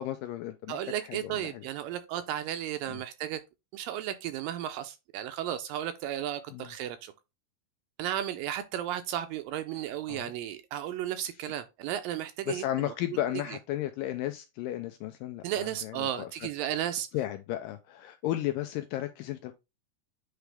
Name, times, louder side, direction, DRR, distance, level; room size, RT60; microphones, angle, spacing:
voice 1, 0.0-1.6 2.9-3.0 6.5-6.7 10.1-10.3 12.5-16.3 17.1-19.5, left 13 dB, 80° left, 2.0 m, -34 dB
voice 2, 0.7-3.4 3.7-7.1 8.0-12.9 13.5-13.6 15.4-17.1, right 11 dB, 80° right, 2.1 m, -34 dB
9.1 x 3.2 x 3.3 m
omnidirectional pair, 4.3 m